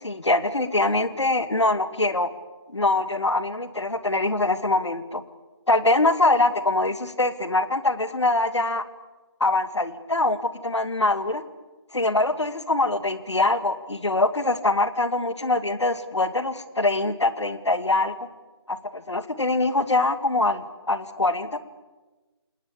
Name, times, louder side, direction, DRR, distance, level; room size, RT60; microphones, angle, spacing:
voice 1, 0.0-2.3 2.7-5.2 5.7-8.8 9.4-11.4 11.9-18.3 18.7-21.6, left 2 dB, 80° left, 12 dB, 2.1 m, -23 dB
29.0 x 19.0 x 8.5 m, 1.2 s
figure-of-eight pair, 160°, 15 cm